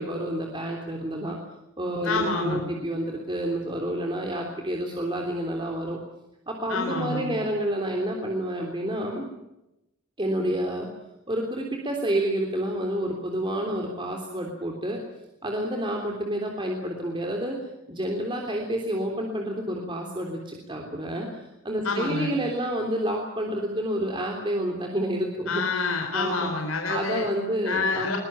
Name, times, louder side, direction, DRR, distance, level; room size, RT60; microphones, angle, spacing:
voice 1, 0.0-1.4 1.8-6.0 6.5-9.3 10.2-10.9 11.3-15.0 15.4-17.6 17.9-25.6 26.1-26.5 26.9-28.2, right 1 dB, 25° right, 1 dB, 3.4 m, -29 dB
voice 2, 2.0-2.7 6.7-7.3 21.8-22.3 25.5-27.3 27.6-28.2, left 3 dB, 80° left, 3 dB, 4.2 m, -27 dB
23.0 x 21.0 x 8.9 m, 0.88 s
head